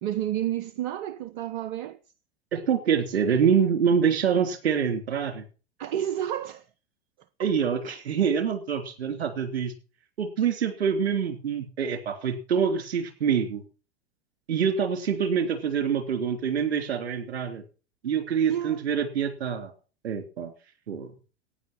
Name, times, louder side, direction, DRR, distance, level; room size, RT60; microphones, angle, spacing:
voice 1, 0.0-2.0 5.8-6.7 7.4-7.5 18.5-18.8, right 11 dB, 50° right, 0.8 m, -30 dB
voice 2, 2.5-5.4 7.4-9.7 10.2-13.6 14.5-17.6 18.0-19.7 20.0-20.5 20.9-21.1, right 7 dB, 65° right, 3.3 m, -25 dB
15.0 x 9.5 x 5.8 m
figure-of-eight pair, 90°, 33 cm